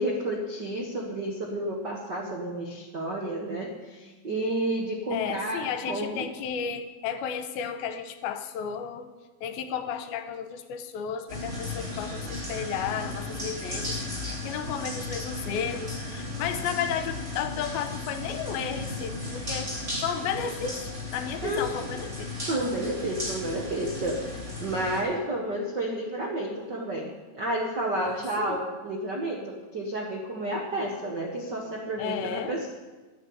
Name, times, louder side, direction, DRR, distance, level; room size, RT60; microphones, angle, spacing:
voice 1, 0.0-6.3 21.4-22.0 22.5-24.3 24.6-32.7, right 1 dB, 75° right, 0 dB, 1.0 m, -31 dB
voice 2, 5.1-9.1 9.4-14.0 14.2-19.7 20.0-22.3 28.0-28.6 32.0-32.5, left 7 dB, 80° left, 9 dB, 2.6 m, -33 dB
sound 1, 11.3-25.0, left 2 dB, 20° right, 3.5 m, -35 dB
11.5 x 10.0 x 8.7 m, 1.3 s
omnidirectional pair, 4.5 m